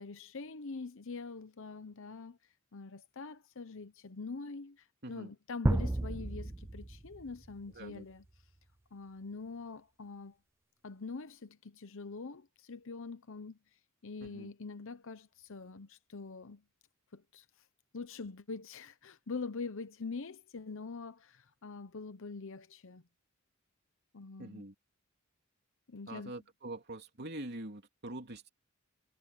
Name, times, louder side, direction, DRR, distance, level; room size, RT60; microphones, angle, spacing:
voice 1, 0.0-2.4 2.7-4.8 5.1-8.2 8.9-10.3 10.8-13.6 14.0-16.6 17.1-17.4 17.9-23.0 24.1-24.6 25.9-26.3, left 4 dB, 65° left, 0.8 m, -44 dB
sound 1, 5.6-7.6, right 1 dB, 10° right, 0.4 m, -33 dB
voice 2, 7.7-8.1 14.2-14.5 24.4-24.7 26.1-28.5, right 1 dB, 50° right, 3.2 m, -44 dB
head